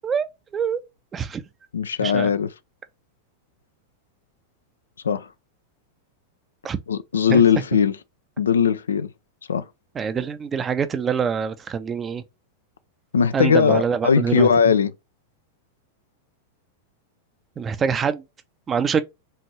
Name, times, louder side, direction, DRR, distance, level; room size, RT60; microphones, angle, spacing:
voice 1, 1.7-2.5 5.0-5.3 6.9-8.0 8.4-9.1 9.5-9.6 13.1-14.9, left 6 dB, 70° left, 0.4 m, -19 dB
voice 2, 10.0-12.2 13.3-14.5 17.6-18.2 18.7-19.0, right 6 dB, 20° right, 0.6 m, -24 dB
5.5 x 2.6 x 3.2 m
figure-of-eight pair, 90°, 0 cm